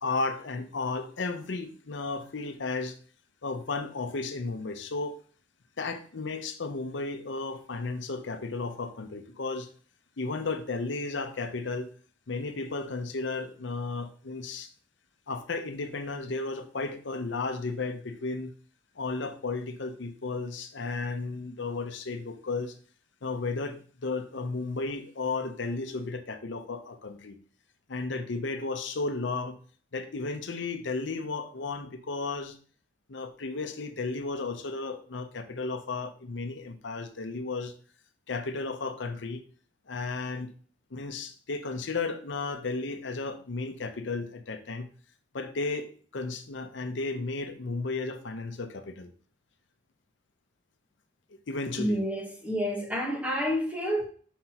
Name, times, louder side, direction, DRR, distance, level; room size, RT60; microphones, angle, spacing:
voice 1, 0.0-3.0 3.4-5.2 5.8-9.7 10.2-11.9 12.3-14.7 15.3-18.5 19.0-22.8 23.2-27.4 27.9-29.6 29.9-32.6 33.1-37.7 38.3-39.4 39.9-40.5 40.9-44.9 45.3-49.1 51.3-52.0, left 3 dB, 75° left, 0.7 m, -34 dB
voice 2, 51.8-54.0, equal, 5° right, 1.1 m, -29 dB
5.8 x 5.5 x 2.9 m
head